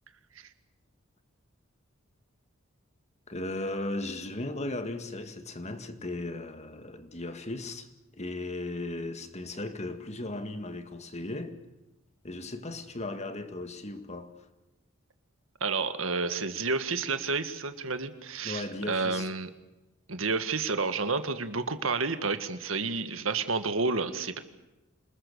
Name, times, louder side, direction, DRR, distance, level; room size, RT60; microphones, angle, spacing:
voice 1, 3.3-7.9 8.1-11.6 12.2-14.4 18.4-19.3, left 2 dB, 35° left, 2.0 m, -36 dB
voice 2, 15.6-19.5 20.1-24.4, right 4 dB, 75° right, 1.8 m, -30 dB
27.5 x 20.5 x 7.0 m
head